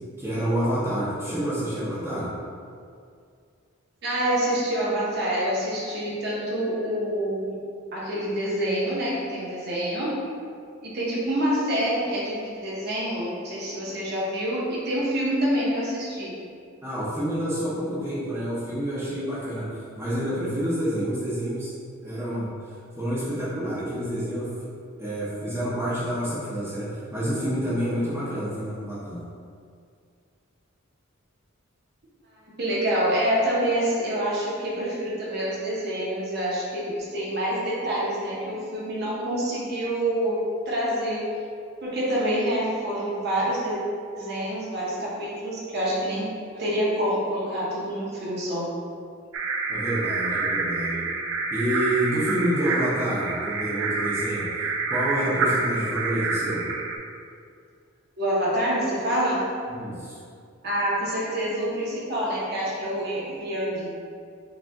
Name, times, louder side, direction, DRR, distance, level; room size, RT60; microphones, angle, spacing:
voice 1, 0.2-2.3 16.8-19.7 20.0-21.7 22.0-29.2 49.7-51.1 51.5-56.6 59.7-60.2, right 1 dB, 10° right, -11 dB, 0.8 m, -28 dB
voice 2, 4.0-7.6 7.9-10.1 10.8-16.3 32.6-41.3 41.8-43.8 44.1-46.3 46.5-48.7 55.3-55.4 58.2-59.4 60.6-63.9, right 1 dB, 50° right, -6 dB, 1.0 m, -27 dB
sound 1, 49.3-57.0, right 3 dB, 70° right, 0.4 m, -28 dB
5.1 x 2.5 x 3.5 m, 2.3 s
head